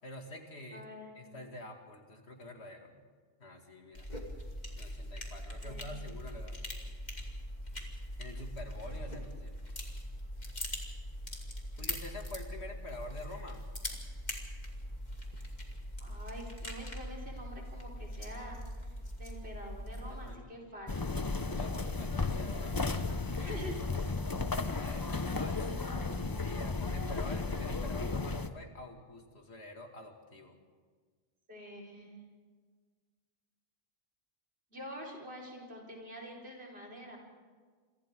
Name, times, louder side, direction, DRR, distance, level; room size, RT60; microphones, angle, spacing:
voice 1, 0.0-0.8 1.1-2.9 3.4-4.1 4.8-6.6 8.2-9.6 11.8-13.7 20.1-20.5 21.3-22.9 23.3-23.7 24.7-25.8 26.3-30.6, left 1 dB, 90° left, 3 dB, 2.7 m, -47 dB
voice 2, 0.7-1.1 5.6-6.0 16.0-18.6 19.1-21.2 23.4-24.1 24.6-24.8 25.5-26.2 26.9-27.1 31.5-32.1 34.7-37.2, equal, 75° right, -1 dB, 5.1 m, -46 dB
sound 1, 4.0-20.4, equal, 45° left, 2.7 m, -42 dB
sound 2, 20.9-28.5, left 3 dB, 25° left, 0.7 m, -34 dB
28.0 x 24.5 x 3.8 m, 1.5 s
omnidirectional pair, 1.1 m